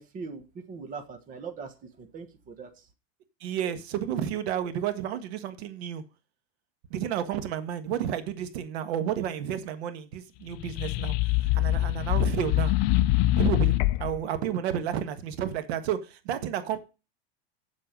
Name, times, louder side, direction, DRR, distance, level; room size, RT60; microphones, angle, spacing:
voice 1, 0.0-2.9, right 5 dB, 25° right, 1.4 m, -41 dB
voice 2, 3.4-6.0 6.9-11.1 11.4-12.7 13.4-16.8, right 9 dB, 80° right, 1.6 m, -31 dB
sound 1, 10.5-14.2, left 16 dB, 45° left, 0.5 m, -24 dB
8.6 x 7.7 x 5.3 m
supercardioid pair, 160°, 32 cm